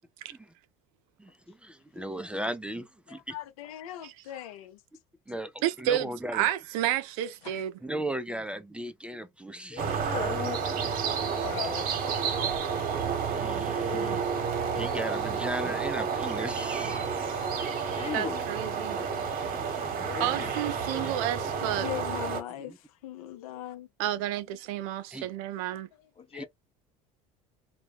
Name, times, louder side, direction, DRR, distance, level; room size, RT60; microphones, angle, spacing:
voice 1, 1.2-3.4 5.3-6.5 7.8-10.2 13.2-14.2 14.7-17.7 18.3-18.4 19.2-20.2 22.6-22.8 25.1-25.3 26.3-26.4, right 1 dB, 5° right, 0.3 m, -37 dB
voice 2, 3.1-4.8 7.4-7.6 11.4-11.9 21.6-22.7 23.0-23.9, left 13 dB, 85° left, 0.6 m, -39 dB
voice 3, 5.6-7.8 18.1-19.0 20.2-21.9 24.0-25.9, right 12 dB, 75° right, 0.5 m, -30 dB
voice 4, 9.7-10.7 13.8-14.2 17.9-18.4 18.9-19.1 20.0-20.5 20.9-21.2 26.2-26.4, left 7 dB, 30° left, 0.7 m, -38 dB
sound 1, 9.8-22.4, right 6 dB, 50° right, 1.0 m, -30 dB
2.2 x 2.1 x 3.3 m
supercardioid pair, 90°, 18 cm